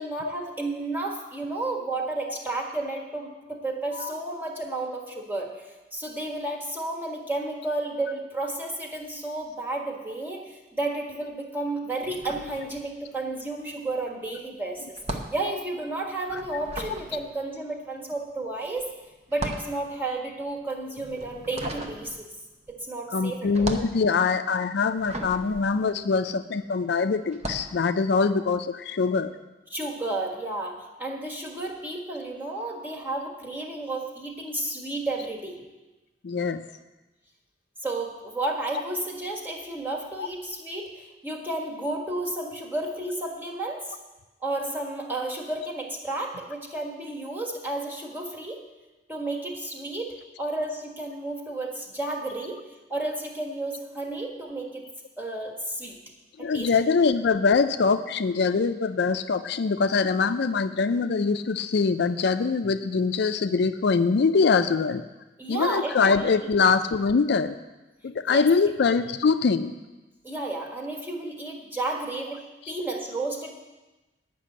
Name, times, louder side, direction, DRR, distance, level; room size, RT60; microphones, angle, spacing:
voice 1, 0.0-18.9 19.3-22.3 22.7-23.8 29.7-35.6 37.8-44.0 44.4-48.6 49.1-52.6 52.9-54.9 55.2-56.0 56.4-56.7 65.4-66.7 68.2-68.7 70.2-73.6, right 2 dB, 10° right, -1 dB, 1.6 m, -32 dB
sound 1, 12.0-13.3 13.5-26.7 27.2-27.8, right 1 dB, 35° right, 0.9 m, -37 dB
voice 2, 23.1-29.3 36.2-36.6 40.2-40.3 56.4-65.0 65.5-67.5 68.0-69.7, left 4 dB, 65° left, 9 dB, 0.4 m, -23 dB
10.0 x 6.0 x 8.5 m, 1.1 s
head